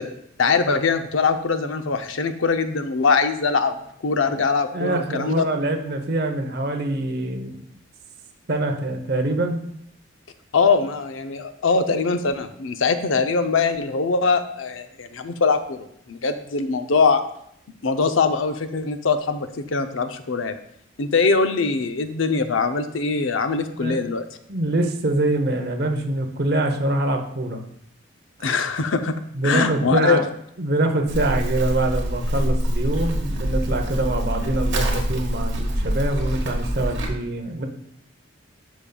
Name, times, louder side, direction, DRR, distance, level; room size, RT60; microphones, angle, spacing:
voice 1, 0.4-5.4 10.5-17.2 17.8-20.6 21.0-24.2 28.4-29.1 29.4-30.2, left 4 dB, 80° left, 8 dB, 0.6 m, -22 dB
voice 2, 4.7-7.6 8.5-9.6 23.8-24.0 24.5-27.6 29.3-30.2 30.6-37.7, right 2 dB, 50° right, 4 dB, 0.8 m, -24 dB
Livestock farm animals working animals, 31.1-37.1, equal, 70° right, 1.4 m, -25 dB
12.0 x 5.3 x 2.3 m, 0.73 s
head